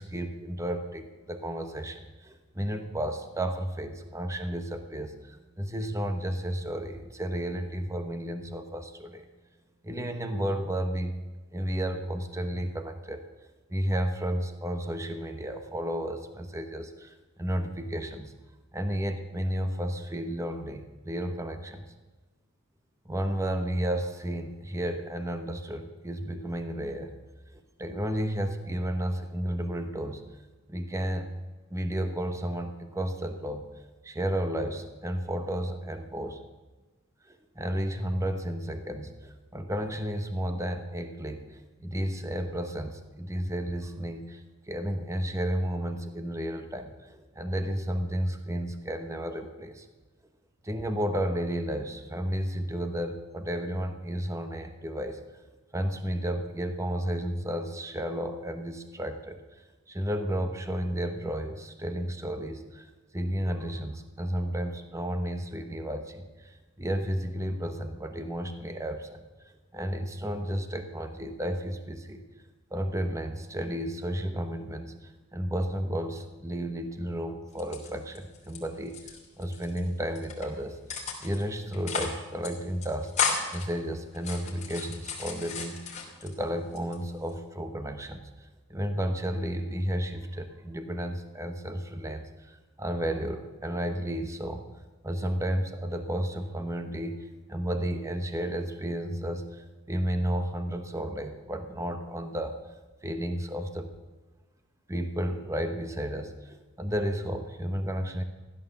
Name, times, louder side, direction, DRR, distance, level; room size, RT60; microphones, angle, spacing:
voice 1, 0.0-9.2 9.8-11.1 11.5-13.3 13.7-18.3 18.7-21.8 23.0-27.1 27.5-30.2 30.7-31.3 31.7-33.7 34.0-36.4 37.3-49.9 50.6-55.2 55.7-59.4 59.9-69.2 69.7-72.2 72.7-80.8 81.2-94.6 95.0-97.2 97.5-102.5 103.0-103.9 104.9-108.2, equal, 15° right, 7 dB, 1.0 m, -32 dB
sound 1, 77.5-78.6 78.9-79.8 80.2-80.5 80.9-81.4 81.7-82.2 82.4-82.5 82.8-83.7 84.1-86.3 86.8-87.4, left 5 dB, 35° left, 2.9 m, -33 dB
15.0 x 11.5 x 7.0 m, 1.2 s
head